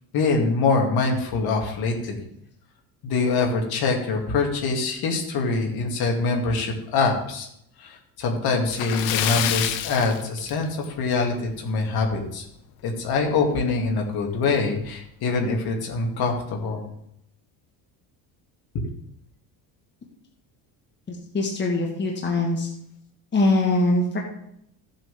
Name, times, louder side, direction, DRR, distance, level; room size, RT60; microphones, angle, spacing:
voice 1, 0.1-2.2 3.0-7.5 7.8-12.4 12.8-16.9, left 4 dB, 55° left, 1 dB, 2.6 m, -24 dB
Splash splatter, 8.7-11.0 11.3-11.5 12.0-12.1 13.5-13.6 13.9-14.0 14.6-14.9, left 10 dB, 85° left, 1.0 m, -27 dB
voice 2, 21.1-22.7 23.3-24.2, left 2 dB, 25° left, 0 dB, 1.6 m, -22 dB
15.0 x 7.8 x 3.6 m, 0.75 s
cardioid pair, 135°, 44 cm